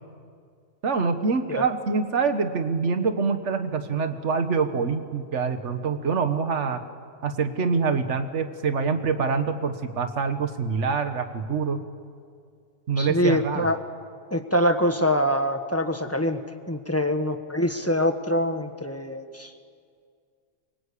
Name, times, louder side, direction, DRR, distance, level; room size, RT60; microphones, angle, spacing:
voice 1, 0.8-6.8 7.2-11.8 12.9-13.7, right 5 dB, 65° right, 8 dB, 1.7 m, -25 dB
voice 2, 13.0-13.8 14.3-16.4 16.7-19.5, equal, 10° left, 6 dB, 1.3 m, -24 dB
27.5 x 24.0 x 8.5 m, 2.2 s
omnidirectional pair, 1.3 m